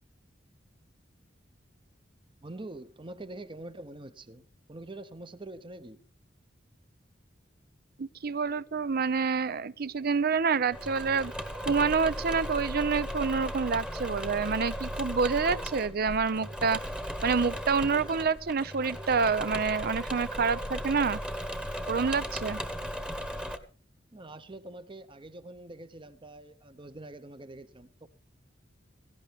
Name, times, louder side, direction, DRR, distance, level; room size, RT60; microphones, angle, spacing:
voice 1, 2.4-4.4 4.7-6.0 24.1-28.1, right 2 dB, 25° right, 1.0 m, -45 dB
voice 2, 8.0-11.3 11.7-16.8 17.2-21.2 21.9-22.6, right 5 dB, 55° right, 0.6 m, -27 dB
Engine / Mechanisms, 10.7-23.6, equal, 5° right, 1.2 m, -36 dB
17.5 x 16.0 x 3.6 m
head